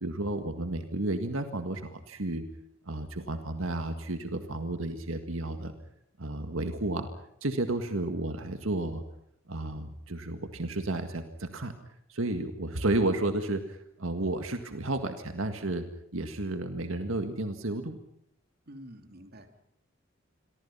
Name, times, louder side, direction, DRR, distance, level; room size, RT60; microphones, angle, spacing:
voice 1, 0.0-2.5 2.9-5.7 6.2-7.1 7.4-9.0 9.5-11.7 12.1-18.0, right 2 dB, 85° right, 7 dB, 1.9 m, -32 dB
voice 2, 18.7-19.6, equal, 50° right, 6 dB, 3.1 m, -48 dB
28.5 x 23.5 x 5.7 m, 0.74 s
head